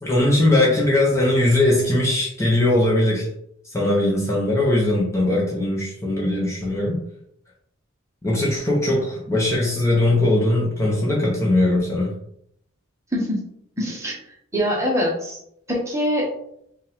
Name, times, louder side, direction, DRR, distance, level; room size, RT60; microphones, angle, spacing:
voice 1, 0.0-3.3 3.7-7.0 8.2-12.1, left 1 dB, 15° left, -4 dB, 0.9 m, -20 dB
voice 2, 13.8-14.2 14.5-15.4 15.7-16.3, equal, 15° right, -3 dB, 1.1 m, -23 dB
5.1 x 2.5 x 3.6 m, 0.72 s
head